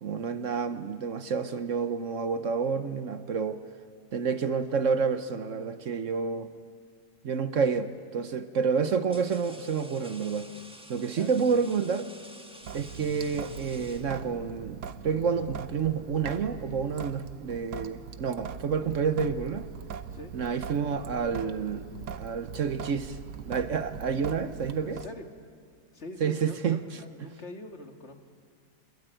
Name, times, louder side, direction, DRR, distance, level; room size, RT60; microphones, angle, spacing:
voice 1, 0.0-3.6 4.1-6.5 7.2-10.5 10.9-12.1 12.7-19.7 20.3-21.9 22.2-23.2 23.4-25.0 26.2-26.8, right 6 dB, 55° right, 11 dB, 1.1 m, -29 dB
sound 1, 7.5-7.8 8.6-14.5, equal, 5° right, 1.3 m, -50 dB
voice 2, 11.2-11.7 20.1-20.3 24.8-25.3 25.9-28.2, left 2 dB, 40° left, 5 dB, 2.1 m, -44 dB
Sink (filling or washing) / Drip, 12.6-25.1, right 7 dB, 70° right, 1.4 m, -41 dB
27.0 x 21.5 x 9.1 m, 2.1 s
omnidirectional pair, 1.9 m